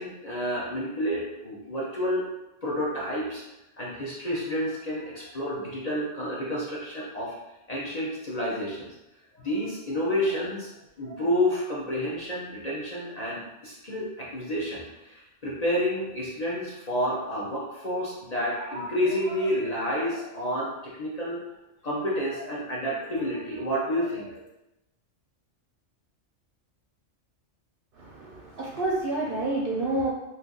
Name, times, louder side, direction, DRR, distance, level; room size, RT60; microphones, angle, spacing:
voice 1, 0.0-2.2 2.6-3.4 3.8-7.3 7.7-8.9 9.4-10.7 11.0-21.4 21.8-24.4, equal, 40° left, -6 dB, 0.6 m, -29 dB
voice 2, 28.0-30.1, right 2 dB, 60° right, -3 dB, 0.7 m, -29 dB
2.7 x 2.4 x 3.8 m, 0.95 s
omnidirectional pair, 1.3 m